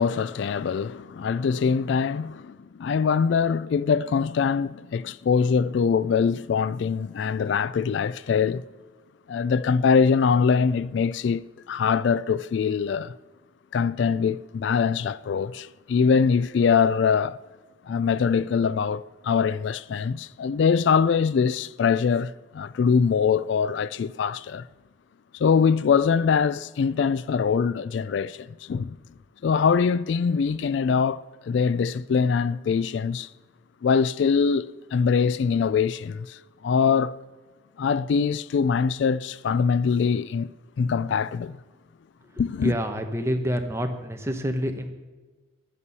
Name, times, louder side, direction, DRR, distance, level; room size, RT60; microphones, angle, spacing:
voice 1, 0.0-8.6 9.3-13.1 13.7-17.4 17.9-24.7 25.3-29.0 29.4-33.3 33.8-37.1 37.8-40.5 40.8-41.6 42.4-42.7, left 6 dB, 65° left, 0.3 m, -23 dB
voice 2, 42.6-44.9, equal, 15° right, 1.0 m, -27 dB
11.5 x 8.1 x 6.8 m
head